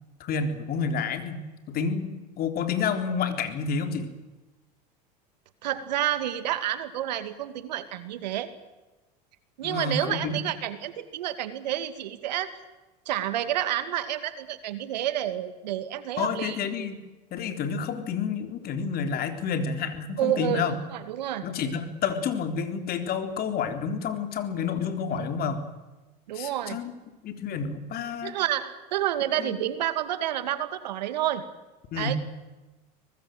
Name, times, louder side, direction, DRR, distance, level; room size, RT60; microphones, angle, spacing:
voice 1, 0.2-4.1 9.6-10.3 16.2-17.0 17.3-20.8 21.4-25.6 26.3-26.9 27.2-28.4 29.4-29.6 31.9-32.2, left 6 dB, 45° left, 7 dB, 3.8 m, -29 dB
voice 2, 5.6-8.5 9.6-12.5 13.1-16.6 20.2-21.5 25.2-25.3 26.3-26.8 28.2-31.4 32.0-32.2, right 12 dB, 85° right, 11 dB, 2.3 m, -29 dB
24.0 x 20.0 x 7.9 m, 1.1 s
supercardioid pair, 105°, 21 cm